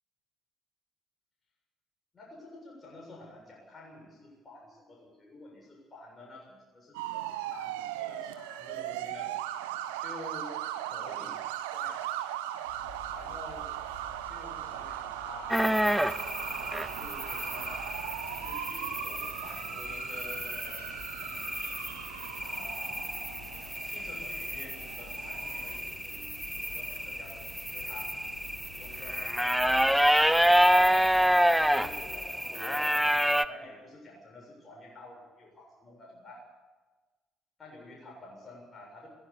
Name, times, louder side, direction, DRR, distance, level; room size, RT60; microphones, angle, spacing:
voice 1, 2.1-9.3 10.0-12.0 13.1-13.7 14.3-16.0 16.6-21.4 22.4-23.2 23.8-28.2 28.7-29.2 29.6-31.0 31.3-32.9 33.3-36.5 37.6-39.1, left 2 dB, 30° left, -2 dB, 7.3 m, -49 dB
sound 1, 6.9-25.8, right 13 dB, 70° right, 1.1 m, -39 dB
sound 2, 12.6-32.2, left 2 dB, 85° left, 3.1 m, -51 dB
sound 3, 15.5-33.5, equal, ahead, 0.9 m, -28 dB
22.0 x 17.0 x 7.0 m, 1.2 s
figure-of-eight pair, 50°, 0 cm